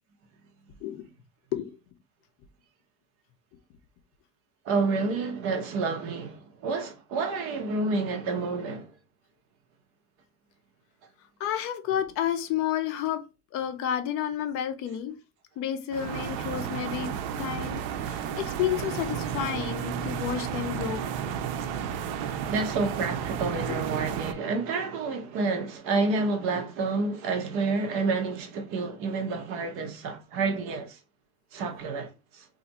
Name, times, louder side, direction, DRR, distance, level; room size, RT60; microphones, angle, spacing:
voice 1, 4.6-8.9 18.1-18.3 22.5-31.0 31.5-32.5, right 3 dB, 50° right, 0.7 m, -29 dB
voice 2, 11.4-13.2 13.5-15.1 15.6-17.1 17.4-21.0 23.7-23.8, left 10 dB, 50° left, 0.5 m, -30 dB
sound 1, 15.9-24.3, right 8 dB, 85° right, 0.5 m, -33 dB
Bowed string instrument, 18.5-25.1, right 4 dB, 20° left, 0.9 m, -41 dB
2.6 x 2.4 x 4.0 m
cardioid pair, 180°, 30 cm